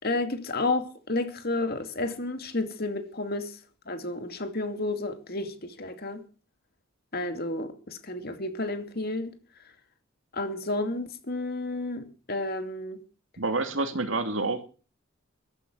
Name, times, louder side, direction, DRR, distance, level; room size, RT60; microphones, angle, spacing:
voice 1, 0.0-3.6 3.9-6.2 7.1-9.3 10.3-13.0, left 2 dB, 50° left, 2.6 m, -31 dB
voice 2, 13.4-14.7, right 3 dB, 70° right, 2.5 m, -28 dB
15.5 x 12.5 x 6.2 m
head